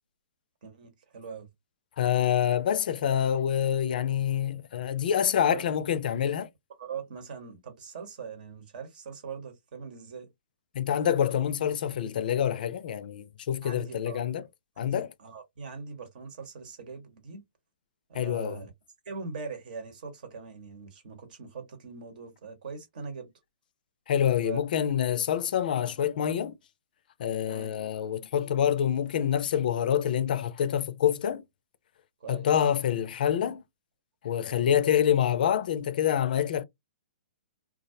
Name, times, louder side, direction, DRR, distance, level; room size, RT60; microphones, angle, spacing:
voice 1, 0.6-1.5 5.5-5.7 6.8-10.3 13.6-14.2 14.8-17.4 18.1-18.7 19.0-23.3 24.4-24.6 27.5-27.7 32.2-32.5 34.4-34.7, right 5 dB, 60° right, 1.0 m, -41 dB
voice 2, 2.0-6.5 10.7-14.4 14.8-15.1 18.1-18.7 24.1-26.5 27.2-31.4 32.3-33.6 34.2-36.6, left 9 dB, 60° left, 0.4 m, -26 dB
2.3 x 2.0 x 2.6 m
hypercardioid pair, 135°, 5 cm